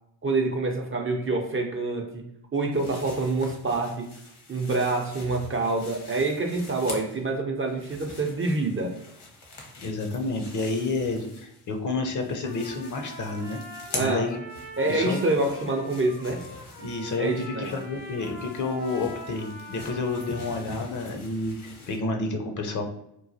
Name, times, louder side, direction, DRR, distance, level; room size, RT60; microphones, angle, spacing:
voice 1, 0.2-4.1 4.5-8.9 13.9-14.3 14.8-16.4 17.2-17.7, right 2 dB, 30° right, 2 dB, 0.5 m, -26 dB
sound 1, 2.7-7.3 7.6-11.8 12.1-22.0, left 2 dB, 65° left, 1.0 m, -44 dB
voice 2, 9.8-13.6 14.0-14.4 14.9-15.2 16.8-22.9, left 3 dB, 45° left, 3 dB, 0.6 m, -30 dB
Trumpet, 12.4-20.8, left 1 dB, 90° left, 1.4 m, -43 dB
3.0 x 2.3 x 2.6 m, 0.79 s
supercardioid pair, 60°, 44 cm